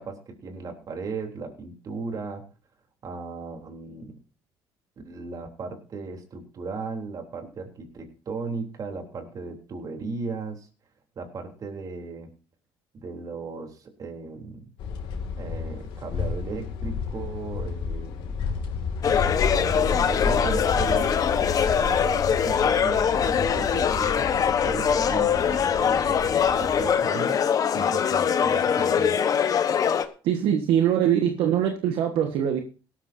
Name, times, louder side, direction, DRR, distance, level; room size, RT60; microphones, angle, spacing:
voice 1, 0.0-2.4 3.0-4.2 5.0-10.7 11.2-12.3 12.9-14.7 15.4-18.3 19.0-27.4 27.7-29.2, right 4 dB, 45° right, 3 dB, 3.4 m, -36 dB
sound 1, 14.8-26.9, left 5 dB, 70° left, 2.5 m, -31 dB
sound 2, 19.0-30.0, left 7 dB, 45° left, 1.1 m, -23 dB
voice 2, 30.2-32.6, right 9 dB, 75° right, 4 dB, 1.5 m, -22 dB
17.5 x 13.0 x 2.7 m, 0.35 s
cardioid pair, 100°, 9 cm